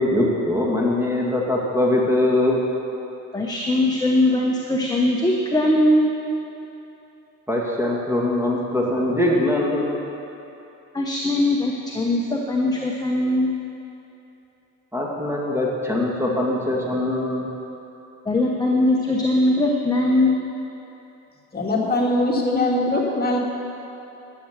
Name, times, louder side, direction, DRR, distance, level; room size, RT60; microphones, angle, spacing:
voice 1, 0.0-2.6 7.5-9.9 14.9-17.5, left 1 dB, 10° right, -3 dB, 2.2 m, -22 dB
voice 2, 3.3-6.1 10.9-13.5 18.3-20.3, left 1 dB, 15° left, -1 dB, 1.0 m, -20 dB
voice 3, 21.5-23.4, left 2 dB, 30° left, -2 dB, 2.0 m, -21 dB
11.5 x 7.9 x 6.6 m, 3.0 s
cardioid pair, 90°, 30 cm